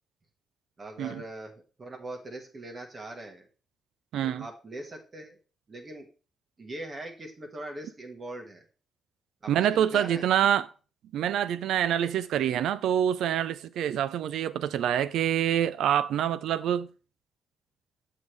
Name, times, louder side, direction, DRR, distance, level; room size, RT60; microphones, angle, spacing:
voice 1, 0.8-1.5 1.8-3.5 4.2-5.4 5.7-6.1 6.6-8.6 9.4-10.3, right 1 dB, 35° right, 1.4 m, -41 dB
voice 2, 4.1-4.5 9.5-10.7 11.1-16.9, right 10 dB, 85° right, 0.4 m, -26 dB
7.4 x 6.5 x 3.2 m
cardioid pair, 100°, 0 cm